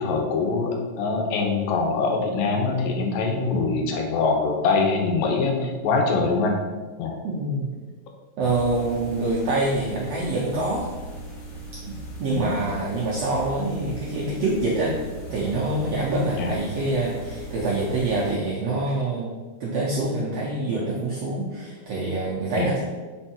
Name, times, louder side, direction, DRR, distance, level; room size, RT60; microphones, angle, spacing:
voice 1, 0.0-6.6 7.0-7.2 12.4-12.5 16.4-16.5 22.6-22.7, left 4 dB, 90° left, 2 dB, 2.5 m, -23 dB
voice 2, 7.2-7.7 8.4-10.9 11.8-15.0 15.3-19.3 19.6-22.8, right 2 dB, 80° right, -4 dB, 1.4 m, -26 dB
sound 1, 8.4-18.3, right 2 dB, 50° left, 2.1 m, -38 dB
5.2 x 4.5 x 4.3 m, 1.3 s
omnidirectional pair, 4.0 m